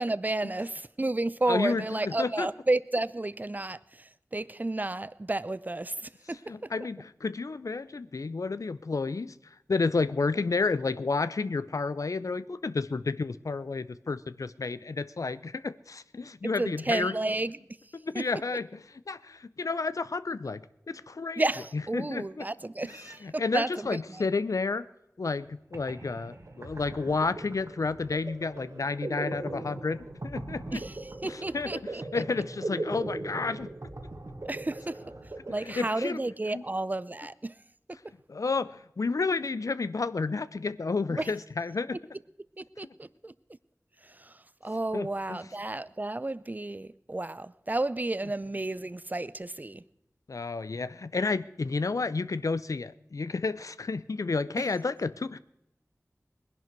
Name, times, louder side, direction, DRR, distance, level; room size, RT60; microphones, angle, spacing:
voice 1, 0.0-6.7 16.4-17.6 18.1-18.3 21.4-24.2 30.7-32.0 34.5-35.0 35.5-37.5 41.1-41.3 42.6-43.3 44.0-49.8, right 2 dB, 30° right, 0.5 m, -32 dB
voice 2, 1.5-2.5 6.5-9.3 9.7-17.1 17.9-18.8 19.1-20.6 20.9-21.5 21.7-22.4 23.2-24.8 25.2-30.8 31.3-31.7 32.1-33.7 35.8-36.2 36.5-36.6 38.3-42.0 44.9-45.4 50.3-55.4, left 4 dB, 75° left, 0.5 m, -31 dB
sound 1, 25.4-25.5 25.7-36.3, right 2 dB, 65° right, 1.9 m, -39 dB
20.5 x 11.0 x 4.6 m
wide cardioid pair, 40°, 6 cm